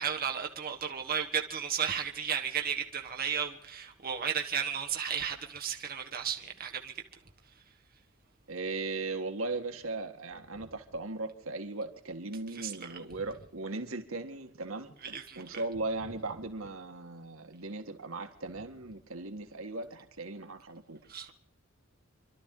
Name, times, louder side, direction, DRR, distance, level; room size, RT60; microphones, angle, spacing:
voice 1, 0.0-6.9 12.5-12.7 15.0-15.4 21.1-21.3, right 7 dB, 45° right, 1.5 m, -34 dB
voice 2, 8.5-21.0, right 3 dB, 90° right, 1.9 m, -38 dB
28.0 x 12.0 x 3.9 m
head